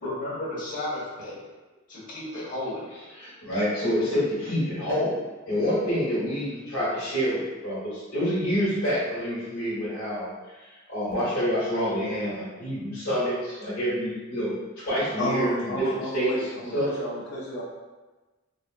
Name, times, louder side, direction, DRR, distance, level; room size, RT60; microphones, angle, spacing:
voice 1, 0.0-1.4 1.9-2.8, left 1 dB, 40° left, -9 dB, 1.3 m, -33 dB
voice 2, 3.1-5.1 5.5-15.8 16.1-16.3 16.7-16.9, equal, 90° left, -10 dB, 1.5 m, -27 dB
voice 3, 15.2-17.6, equal, 60° left, -7 dB, 0.6 m, -31 dB
4.6 x 2.0 x 2.5 m, 1.2 s
head